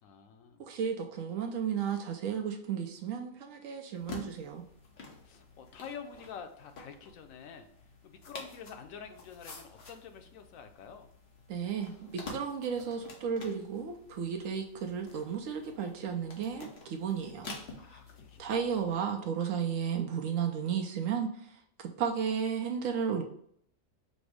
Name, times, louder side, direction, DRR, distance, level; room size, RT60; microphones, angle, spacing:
voice 1, 0.0-0.7 5.2-7.7 8.0-11.1 17.8-18.6, left 7 dB, 90° left, 6 dB, 1.1 m, -47 dB
voice 2, 0.7-4.6 11.5-17.5 17.9-18.0 18.4-23.2, right 7 dB, 80° right, 4 dB, 1.0 m, -33 dB
sound 1, 3.9-18.9, left 3 dB, 55° left, 1.1 m, -49 dB
5.2 x 2.0 x 4.8 m, 0.66 s
omnidirectional pair, 1.4 m